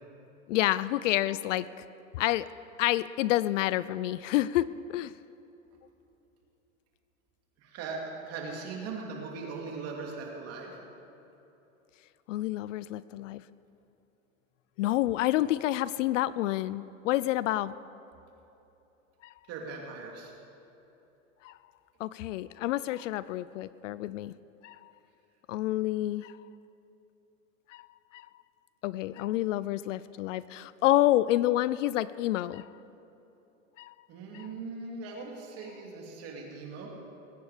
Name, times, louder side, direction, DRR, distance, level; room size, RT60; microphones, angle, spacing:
voice 1, 0.5-1.7 2.1-2.5 2.8-5.1 12.3-13.4 14.8-17.7 19.2-19.3 21.4-21.6 22.0-24.3 24.6-24.9 25.5-26.3 27.7-27.9 28.1-28.3 28.8-32.6 33.8-33.9 34.3-34.5, left 15 dB, 65° left, 18 dB, 0.5 m, -28 dB
voice 2, 7.6-10.8 19.5-20.3 34.1-36.9, right 4 dB, 35° right, 0 dB, 2.8 m, -39 dB
20.5 x 9.1 x 5.0 m, 3.0 s
supercardioid pair, 135°, 41 cm